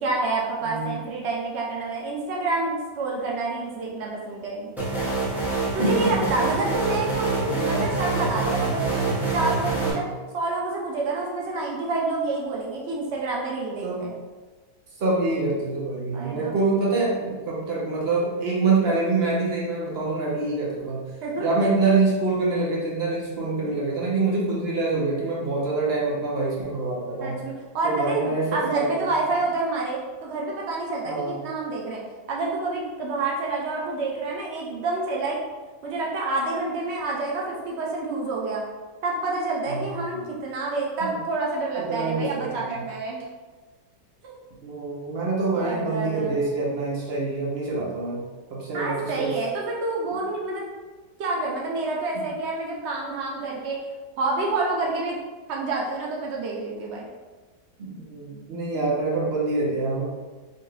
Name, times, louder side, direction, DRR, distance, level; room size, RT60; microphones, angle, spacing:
voice 1, 0.0-4.7 5.7-10.0 10.3-14.1 16.1-16.5 21.2-21.5 27.2-32.0 32.3-35.4 35.8-38.6 39.0-43.2 44.2-44.4 45.5-46.4 48.7-50.7 51.2-53.8 54.2-55.2 55.5-57.1 58.7-58.9, right 3 dB, 85° right, -2 dB, 0.5 m, -28 dB
voice 2, 0.6-0.9 5.8-6.1 7.7-7.8 13.8-14.0 15.0-21.0 21.4-27.4 27.8-29.1 31.0-31.4 39.6-40.2 41.8-42.8 44.6-48.2 48.5-49.3 57.8-60.0, right 3 dB, 45° right, -5 dB, 1.0 m, -25 dB
sound 1, 4.8-9.9, right 3 dB, 5° right, 0.3 m, -26 dB
4.4 x 2.7 x 3.2 m, 1.3 s
omnidirectional pair, 1.9 m